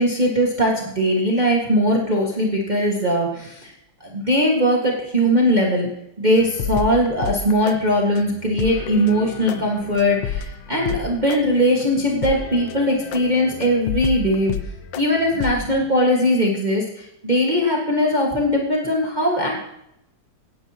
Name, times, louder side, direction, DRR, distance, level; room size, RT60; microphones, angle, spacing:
voice 1, 0.0-3.7 4.0-5.9 6.2-14.5 15.0-19.7, equal, 25° right, -2 dB, 1.8 m, -20 dB
sound 1, 6.4-15.8, left 6 dB, 90° left, 1.5 m, -31 dB
16.5 x 10.0 x 2.9 m, 0.79 s
omnidirectional pair, 1.9 m